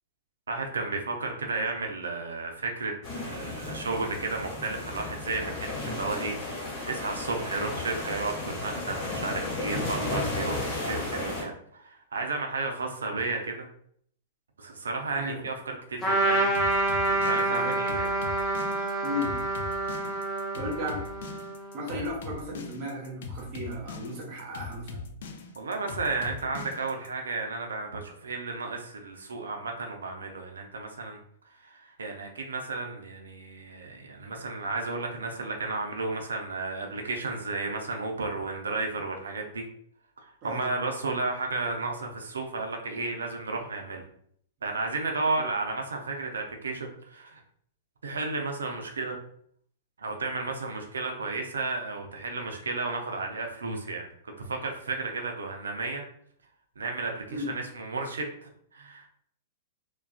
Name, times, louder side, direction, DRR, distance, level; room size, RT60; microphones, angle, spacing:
voice 1, 0.5-13.7 14.6-18.1 25.6-31.2 31.5-39.7 40.2-44.0 44.6-47.4 48.0-49.2 50.0-54.1 54.4-56.0 56.8-59.1, right 3 dB, 85° right, 3 dB, 0.4 m, -33 dB
sound 1, 3.0-11.4, left 2 dB, 40° left, 1.1 m, -34 dB
Trumpet, 16.0-21.9, right 2 dB, 15° left, 0.7 m, -28 dB
sound 2, 16.5-27.1, left 6 dB, 65° left, 0.3 m, -41 dB
voice 2, 19.0-19.4 20.5-21.1 21.7-25.1 40.4-40.7 45.4-45.5 57.3-57.5, left 1 dB, 45° right, -2 dB, 0.8 m, -35 dB
2.4 x 2.2 x 2.4 m, 0.64 s
hypercardioid pair, 115°, 0 cm